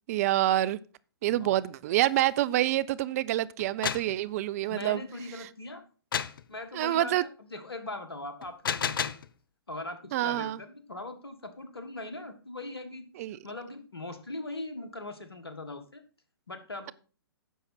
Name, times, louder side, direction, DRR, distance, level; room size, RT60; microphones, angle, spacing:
voice 1, 0.1-0.8 1.2-5.0 6.7-7.2 10.1-10.6 13.2-13.4, right 14 dB, 40° right, 0.5 m, -27 dB
voice 2, 1.3-1.6 4.7-5.8 6.5-9.1 9.7-13.1 13.4-16.0 16.5-16.9, left 2 dB, 85° left, 1.8 m, -40 dB
sound 1, 3.6-4.1 6.1-6.4 8.4-9.3, left 7 dB, 65° left, 0.7 m, -31 dB
10.0 x 7.1 x 4.4 m
figure-of-eight pair, 120°, 12 cm